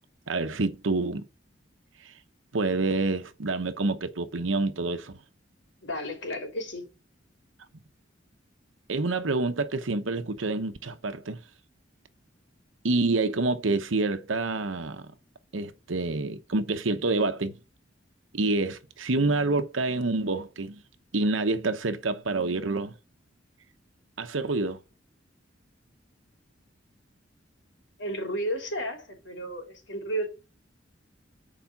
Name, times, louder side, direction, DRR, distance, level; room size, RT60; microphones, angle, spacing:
voice 1, 0.3-1.3 2.0-2.1 2.5-5.2 8.9-11.4 12.8-15.1 15.5-17.6 18.3-20.8 21.1-23.0 24.2-24.8, right 3 dB, 85° right, 0.9 m, -27 dB
voice 2, 5.8-6.8 28.0-30.3, equal, 65° left, 3.4 m, -32 dB
7.2 x 4.9 x 6.8 m
head